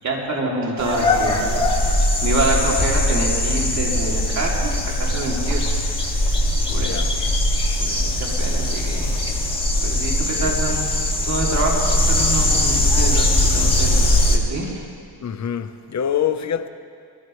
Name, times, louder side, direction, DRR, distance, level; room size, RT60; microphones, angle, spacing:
voice 1, 0.0-5.7 6.0-6.2 6.7-7.4 7.8-9.1 9.8-14.7, right 2 dB, 45° right, -3 dB, 3.0 m, -27 dB
sound 1, 0.8-14.4, left 1 dB, 15° left, 2.2 m, -20 dB
voice 2, 6.8-7.1 10.1-10.8 15.2-16.7, left 9 dB, 45° left, 9 dB, 1.0 m, -26 dB
23.0 x 15.5 x 3.3 m, 2.2 s
cardioid pair, 85°, 41 cm